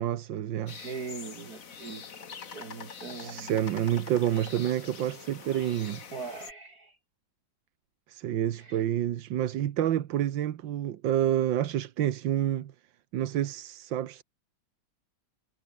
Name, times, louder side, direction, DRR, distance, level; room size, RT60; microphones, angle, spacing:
voice 1, 0.0-0.8 3.1-6.0 8.1-12.7 13.1-14.2, right 11 dB, 70° right, 1.7 m, -28 dB
sound 1, 0.7-6.5, left 6 dB, 45° left, 2.0 m, -45 dB
voice 2, 0.8-3.5 6.1-7.0 8.6-8.8, right 5 dB, 50° right, 2.6 m, -41 dB
omnidirectional pair, 2.2 m